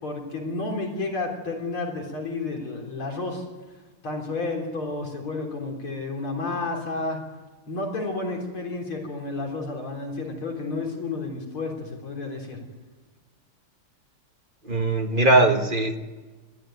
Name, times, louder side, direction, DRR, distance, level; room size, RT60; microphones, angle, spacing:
voice 1, 0.0-3.5 4.0-7.2 7.7-12.6, left 3 dB, 75° left, 1 dB, 4.6 m, -31 dB
voice 2, 14.6-16.0, right 2 dB, 25° right, 4 dB, 1.4 m, -20 dB
21.0 x 14.5 x 9.3 m, 1.3 s
omnidirectional pair, 2.4 m